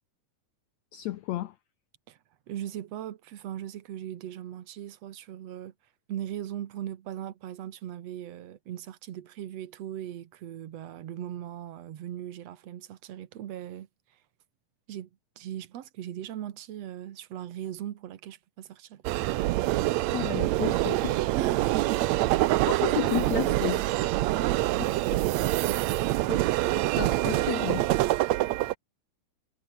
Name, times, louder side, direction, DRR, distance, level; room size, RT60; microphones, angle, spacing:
voice 1, 0.9-1.6 20.1-21.2 22.7-23.9 26.3-27.9, left 15 dB, 75° left, 1.7 m, -32 dB
voice 2, 2.5-5.7 6.1-13.9 14.9-15.1 15.4-19.0 21.3-22.0 24.3-25.2 25.5-25.8, right 11 dB, 60° right, 2.1 m, -38 dB
sound 1, 19.0-28.7, right 17 dB, 80° right, 1.6 m, -25 dB
omnidirectional pair, 3.9 m